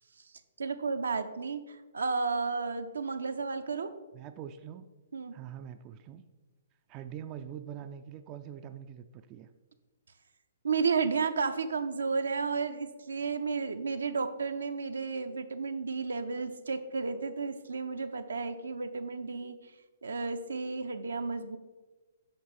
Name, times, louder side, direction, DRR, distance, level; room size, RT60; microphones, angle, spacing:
voice 1, 0.6-3.9 5.1-5.3 10.6-19.6 20.0-21.6, right 4 dB, 75° right, 8 dB, 0.6 m, -32 dB
voice 2, 4.1-4.9 5.3-6.3 6.9-9.5, right 9 dB, 30° right, 9 dB, 0.4 m, -44 dB
8.5 x 6.0 x 4.3 m, 1.2 s
figure-of-eight pair, 125°, 0 cm